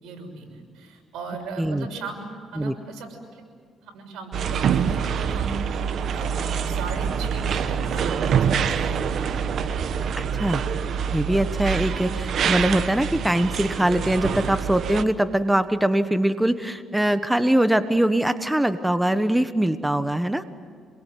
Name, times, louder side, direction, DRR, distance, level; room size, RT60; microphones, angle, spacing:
voice 1, 0.0-3.5 3.8-9.4, right 4 dB, 85° right, 2 dB, 6.5 m, -37 dB
sound 1, 4.3-15.0, right 7 dB, 65° right, 1.3 m, -25 dB
voice 2, 10.2-10.6 11.1-20.4, right 1 dB, 5° right, 10 dB, 1.2 m, -22 dB
27.0 x 23.0 x 9.4 m, 2.1 s
cardioid pair, 90°, 0 cm